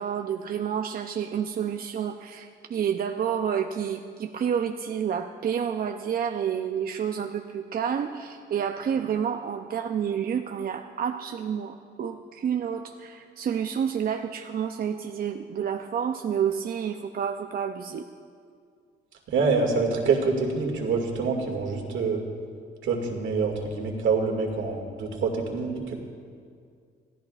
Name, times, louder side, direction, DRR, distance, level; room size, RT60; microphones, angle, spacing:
voice 1, 0.0-18.1, right 8 dB, 50° right, 5 dB, 0.6 m, -29 dB
voice 2, 19.3-22.2 22.8-25.9, right 4 dB, 75° right, 1 dB, 2.2 m, -26 dB
24.5 x 15.0 x 2.5 m, 2.2 s
cardioid pair, 90°, 20 cm